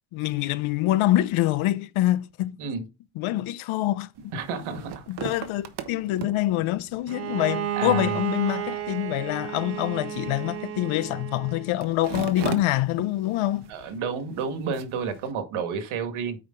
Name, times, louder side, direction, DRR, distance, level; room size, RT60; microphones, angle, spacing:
voice 1, 0.1-2.6 3.2-4.3 5.1-13.7, left 15 dB, 85° left, 0.8 m, -25 dB
sound 1, 4.2-15.3, right 8 dB, 55° right, 1.2 m, -41 dB
voice 2, 4.3-5.1 7.7-8.1 13.7-16.4, right 5 dB, 85° right, 2.0 m, -31 dB
Bowed string instrument, 7.1-11.8, right 10 dB, 30° right, 0.5 m, -32 dB
8.7 x 5.1 x 3.9 m
cardioid pair, 165°, 48 cm